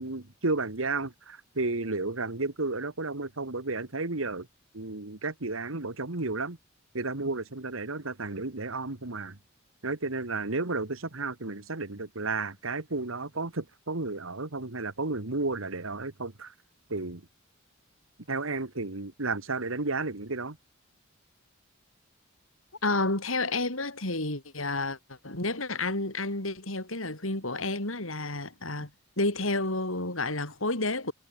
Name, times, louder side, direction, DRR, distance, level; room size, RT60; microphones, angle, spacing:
voice 1, 0.0-4.5 4.7-6.6 6.9-9.4 9.8-16.5 16.9-17.2 18.3-20.6, right 3 dB, 80° right, 1.9 m, -32 dB
voice 2, 22.8-28.9 29.2-31.1, left 2 dB, 80° left, 6.3 m, -30 dB
head